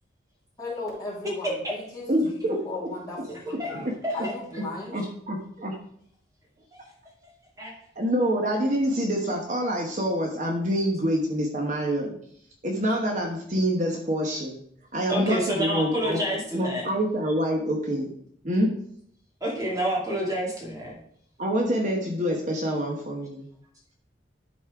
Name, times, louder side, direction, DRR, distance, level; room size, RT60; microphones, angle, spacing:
voice 1, 0.6-3.8 4.1-5.0, left 2 dB, 20° left, -7 dB, 3.0 m, -36 dB
voice 2, 2.1-2.6 3.7-3.9 4.9-5.7 8.0-12.2 12.6-14.6 14.9-16.2 16.5-18.1 18.4-18.7 21.4-23.5, equal, 40° right, 1 dB, 1.1 m, -26 dB
voice 3, 3.3-3.8 4.0-4.2 7.6-7.7 15.1-16.9 19.4-21.0, equal, 20° right, -3 dB, 2.2 m, -28 dB
11.0 x 4.2 x 4.8 m, 0.66 s
head